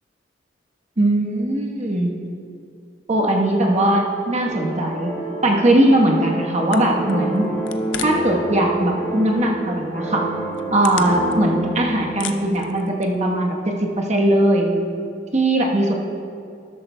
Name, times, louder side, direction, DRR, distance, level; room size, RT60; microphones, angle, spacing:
voice 1, 1.0-2.1 3.1-5.1 5.4-7.5 8.0-10.3 10.7-14.7 15.3-15.9, right 1 dB, 40° right, 0 dB, 1.2 m, -19 dB
sound 1, 4.4-13.5, right 1 dB, 10° left, 1.9 m, -29 dB
sound 2, 6.4-6.5 6.7-8.4 8.6-9.3 9.7-9.8 10.3-11.7 12.0-13.3, left 9 dB, 90° left, 0.6 m, -34 dB
13.0 x 11.5 x 2.3 m, 2.4 s
head